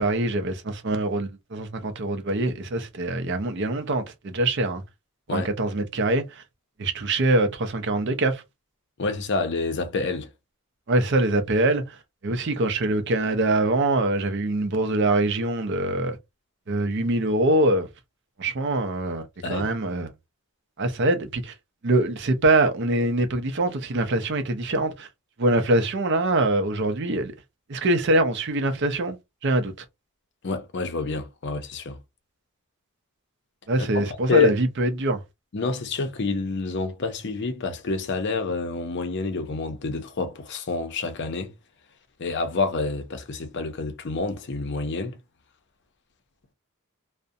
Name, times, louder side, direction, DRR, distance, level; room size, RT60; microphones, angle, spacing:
voice 1, 0.0-4.8 5.3-6.4 6.8-8.4 10.9-16.2 16.7-17.9 18.4-20.1 20.8-21.5 21.8-25.1 25.4-27.3 27.7-29.2 29.4-29.7 33.7-35.2, right 2 dB, 55° right, 0.5 m, -24 dB
voice 2, 9.0-10.3 19.4-19.7 30.4-32.0 34.0-34.5 35.5-41.5 42.2-45.1, left 4 dB, 55° left, 0.5 m, -28 dB
2.5 x 2.1 x 2.6 m
head